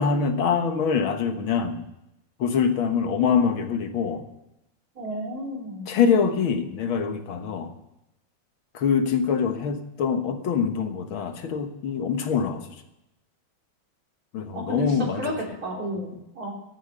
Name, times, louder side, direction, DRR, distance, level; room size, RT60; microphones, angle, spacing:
voice 1, 0.0-1.8 2.4-4.3 5.9-7.7 8.7-12.6 14.3-15.3, left 6 dB, 85° left, 7 dB, 2.2 m, -24 dB
voice 2, 5.0-5.9 14.5-14.8 15.1-16.5, equal, 45° right, -2 dB, 4.3 m, -32 dB
14.5 x 11.5 x 6.6 m, 0.88 s
omnidirectional pair, 2.2 m